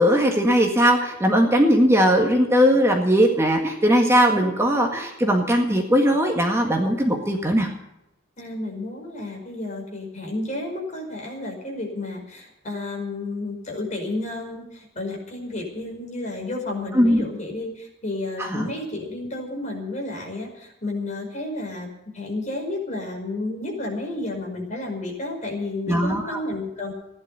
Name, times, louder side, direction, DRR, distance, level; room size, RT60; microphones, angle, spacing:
voice 1, 0.0-7.7 16.9-17.2 18.4-18.7 25.9-26.4, equal, 15° right, 1 dB, 1.8 m, -19 dB
voice 2, 8.4-21.9 22.1-26.9, left 2 dB, 40° left, 1 dB, 5.3 m, -31 dB
16.0 x 11.0 x 6.9 m, 0.88 s
head